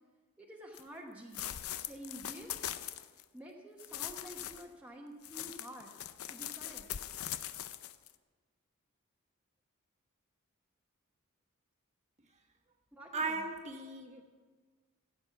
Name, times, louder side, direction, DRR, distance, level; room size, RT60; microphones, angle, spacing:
voice 1, 0.4-1.5 1.8-2.5 3.3-6.0 6.3-6.9 12.9-13.5, equal, 5° right, -2 dB, 1.1 m, -49 dB
sound 1, 0.7-0.8 1.3-3.2 3.8-4.6 5.2-8.1, left 11 dB, 85° left, 0.6 m, -41 dB
voice 2, 13.1-14.2, right 3 dB, 35° right, 3 dB, 1.3 m, -37 dB
15.5 x 8.6 x 5.8 m, 1.5 s
head